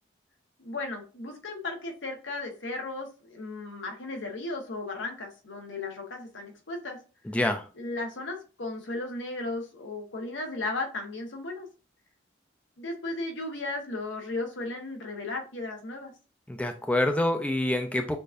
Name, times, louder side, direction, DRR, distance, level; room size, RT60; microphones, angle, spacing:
voice 1, 0.6-7.0 7.8-11.7 12.8-16.1, left 2 dB, 85° left, 3 dB, 1.1 m, -35 dB
voice 2, 7.2-7.7 16.5-18.2, left 1 dB, 5° left, 6 dB, 0.3 m, -26 dB
6.5 x 2.6 x 2.5 m, 0.35 s
head